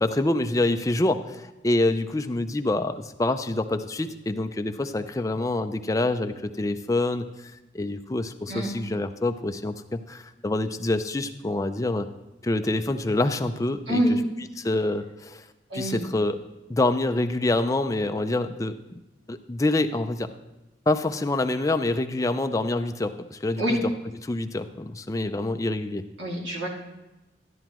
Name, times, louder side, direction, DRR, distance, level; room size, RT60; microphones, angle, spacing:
voice 1, 0.0-12.1 12.4-14.0 14.6-15.4 15.7-16.4 16.7-19.0 19.3-20.3 20.9-23.6 24.2-26.0, left 2 dB, 15° left, 8 dB, 0.4 m, -26 dB
voice 2, 13.9-14.2 15.7-16.0 23.6-23.8 26.2-26.7, equal, 70° right, -3 dB, 2.4 m, -25 dB
12.5 x 10.0 x 3.0 m, 1.0 s
head